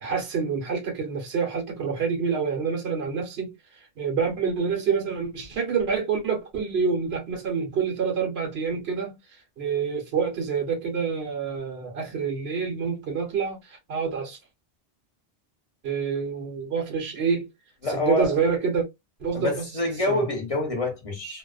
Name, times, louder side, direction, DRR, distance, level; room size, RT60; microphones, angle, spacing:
voice 1, 0.0-3.5 4.0-9.1 9.6-14.4 15.8-17.5 17.9-18.9 19.2-19.7 20.1-20.2, right 5 dB, 80° right, 1.1 m, -27 dB
voice 2, 17.8-18.3 19.3-21.4, left 1 dB, 35° left, 0.9 m, -26 dB
2.6 x 2.0 x 2.4 m
omnidirectional pair, 1.0 m